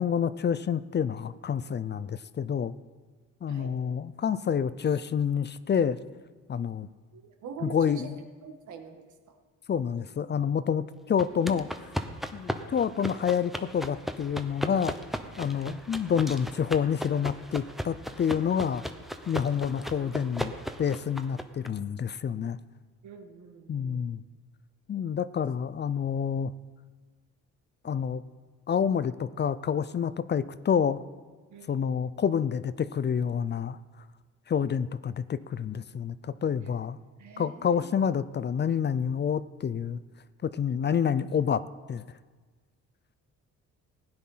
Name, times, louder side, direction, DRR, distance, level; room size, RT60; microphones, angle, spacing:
voice 1, 0.0-2.7 3.4-6.0 6.5-6.9 7.6-8.2 9.7-11.7 12.3-15.0 15.4-18.8 19.3-20.5 20.8-22.6 23.7-24.2 24.9-26.5 27.8-28.2 28.7-31.0 31.7-33.8 34.5-37.0 37.4-40.0 40.4-41.6 41.9-42.0, left 7 dB, 35° left, 16 dB, 0.5 m, -28 dB
voice 2, 3.5-3.8 7.1-8.1 8.4-9.4 11.3-11.6 15.5-15.8 19.4-20.4 23.0-24.0 31.5-31.8 37.2-38.1, right 6 dB, 75° right, 4 dB, 1.9 m, -45 dB
sound 1, 11.2-21.7, equal, ahead, 1.0 m, -37 dB
16.0 x 9.8 x 5.6 m, 1.4 s
cardioid pair, 90°, 30 cm